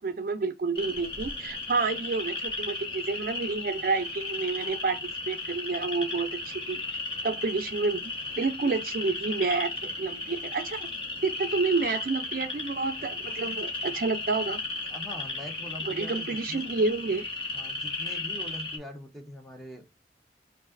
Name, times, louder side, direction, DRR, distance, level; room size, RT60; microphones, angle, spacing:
voice 1, 0.0-6.8 7.2-10.9 11.2-14.6 15.8-17.2, right 4 dB, 50° right, 0.4 m, -29 dB
sound 1, 0.7-18.8, left 2 dB, 30° left, 1.2 m, -35 dB
voice 2, 14.9-16.6 17.5-19.9, left 1 dB, ahead, 0.9 m, -42 dB
5.2 x 2.6 x 2.5 m
head